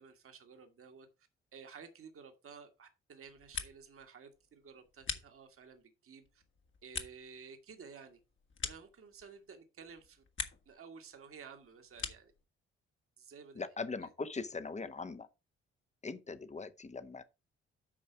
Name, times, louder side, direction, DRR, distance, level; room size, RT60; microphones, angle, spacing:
voice 1, 0.0-6.4 6.8-8.2 8.6-10.2 10.7-12.3 13.2-13.7 14.0-14.1, right 6 dB, 45° right, 1.7 m, -53 dB
sound 1, 3.2-4.0 4.3-5.8 6.2-9.5 9.8-10.8 11.1-12.4, left 5 dB, 40° left, 1.6 m, -44 dB
voice 2, 13.5-15.3 16.0-17.2, left 4 dB, 20° left, 1.1 m, -41 dB
8.9 x 5.5 x 4.5 m
figure-of-eight pair, 45°, 31 cm